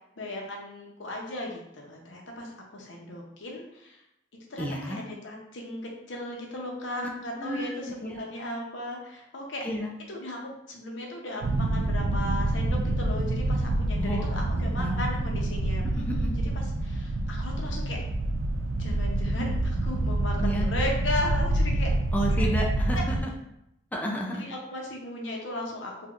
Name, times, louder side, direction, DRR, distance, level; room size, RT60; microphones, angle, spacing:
voice 1, 0.2-4.0 4.5-9.6 10.1-18.0 18.8-21.9 22.9-23.0 24.3-26.1, left 1 dB, 85° left, 0 dB, 0.8 m, -36 dB
voice 2, 4.6-5.0 7.4-8.2 9.6-9.9 14.0-15.0 16.0-16.3 20.4-20.7 22.1-23.3 23.9-24.4, equal, 10° left, -1 dB, 0.3 m, -32 dB
sound 1, 11.4-23.2, right 1 dB, 90° right, 0.4 m, -27 dB
3.4 x 2.7 x 2.4 m, 0.83 s
head